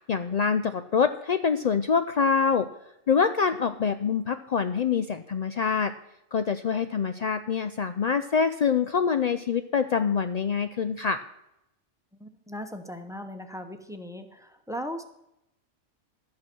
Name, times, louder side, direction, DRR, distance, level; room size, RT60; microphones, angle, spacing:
voice 1, 0.1-2.7 3.1-5.9 6.3-11.2, left 6 dB, 70° left, 9 dB, 0.3 m, -25 dB
voice 2, 12.1-15.0, equal, 5° right, 7 dB, 0.8 m, -38 dB
12.5 x 8.6 x 6.1 m, 0.85 s
omnidirectional pair, 1.3 m